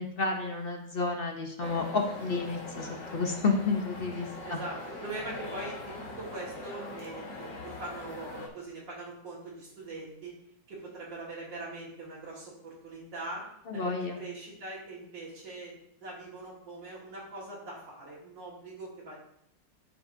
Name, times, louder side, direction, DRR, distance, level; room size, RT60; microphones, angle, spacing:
voice 1, 0.0-4.6 13.7-14.2, left 3 dB, 50° left, 2 dB, 0.7 m, -31 dB
sound 1, 1.6-8.5, left 2 dB, 70° left, 2.2 m, -42 dB
voice 2, 4.4-10.4 10.7-19.2, right 2 dB, 85° right, -6 dB, 2.5 m, -42 dB
13.5 x 4.6 x 2.7 m, 0.73 s
omnidirectional pair, 2.0 m